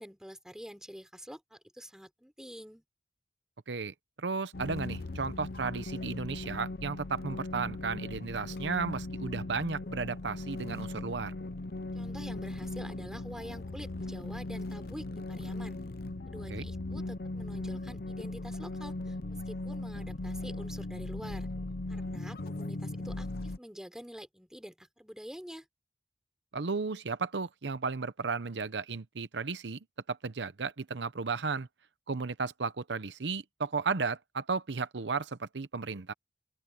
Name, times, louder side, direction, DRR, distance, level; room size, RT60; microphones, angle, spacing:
voice 1, 0.0-2.8 11.9-15.8 16.3-21.5 21.9-25.7, equal, 5° right, 4.2 m, -47 dB
voice 2, 3.7-11.3 16.5-16.7 26.5-29.8 30.1-31.7 32.1-36.1, right 4 dB, 90° right, 0.8 m, -34 dB
sound 1, 4.5-23.6, left 2 dB, 60° left, 0.7 m, -38 dB
open air
head